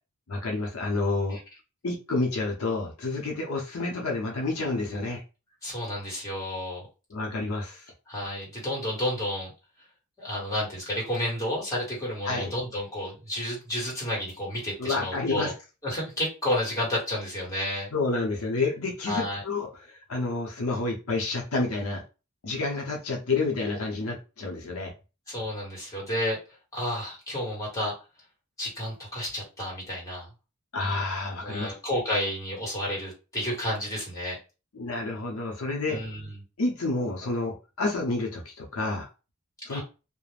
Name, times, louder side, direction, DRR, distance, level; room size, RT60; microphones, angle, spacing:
voice 1, 0.3-1.4 1.8-5.2 7.1-7.9 12.3-12.5 14.8-15.5 17.9-22.0 22.4-24.9 30.7-31.7 34.7-36.0 36.6-39.1 39.7-39.8, left 3 dB, 75° left, 1 dB, 0.7 m, -29 dB
voice 2, 5.6-6.9 8.1-9.5 10.2-15.5 15.8-17.9 19.0-19.4 25.3-26.4 26.7-27.9 28.6-30.3 31.4-34.4 35.8-36.4 39.7-39.8, left 1 dB, 15° left, -4 dB, 1.3 m, -31 dB
2.4 x 2.0 x 3.2 m, 0.31 s
head